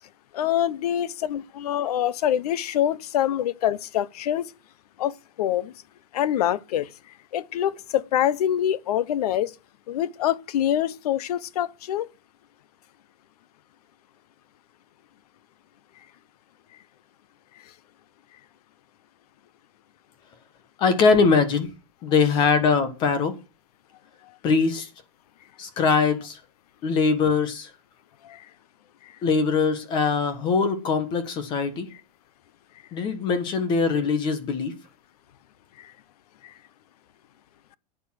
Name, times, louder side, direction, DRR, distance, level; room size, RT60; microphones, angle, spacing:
voice 1, 0.3-4.5 5.0-5.7 6.1-6.9 7.3-9.5 9.9-12.1 28.2-28.4 35.8-35.9 36.4-36.5, left 11 dB, 75° left, 0.9 m, -25 dB
voice 2, 20.8-21.7 22.0-23.3 24.4-24.9 25.6-26.4 26.8-27.7 29.2-31.9 32.9-34.8, left 5 dB, 25° left, 1.4 m, -22 dB
11.5 x 8.5 x 6.0 m
supercardioid pair, 175°, 20 cm